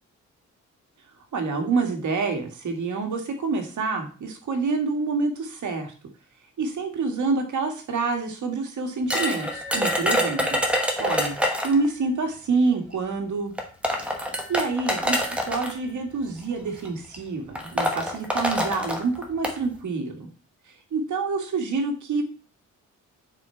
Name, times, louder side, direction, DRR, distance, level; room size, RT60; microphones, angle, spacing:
voice 1, 1.3-5.9 6.6-10.6 11.0-11.3 11.6-13.5 14.5-20.3 20.9-22.2, right 4 dB, 70° right, 4 dB, 1.7 m, -27 dB
sound 1, 9.1-11.9 12.9-13.0 13.6-15.7 16.6-16.9 17.1-17.2 17.6-19.6, equal, 5° right, 1.4 m, -25 dB
6.8 x 4.9 x 4.4 m, 0.38 s
cardioid pair, 110°, 31 cm